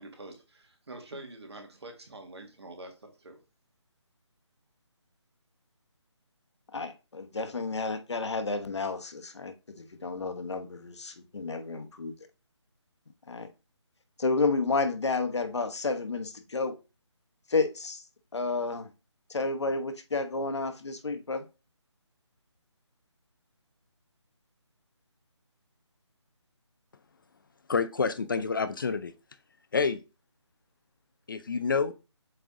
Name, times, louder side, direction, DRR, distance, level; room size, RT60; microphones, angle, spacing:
voice 1, 0.0-3.4, right 2 dB, 60° right, 1.9 m, -46 dB
voice 2, 6.7-12.1 13.3-13.5 14.2-16.7 17.5-18.0 18.3-18.9 19.3-21.4, left 3 dB, 65° left, 1.1 m, -31 dB
voice 3, 27.7-29.1 29.7-30.0 31.3-31.9, left 5 dB, 45° left, 0.5 m, -28 dB
7.8 x 3.4 x 3.7 m
figure-of-eight pair, 160°, 16 cm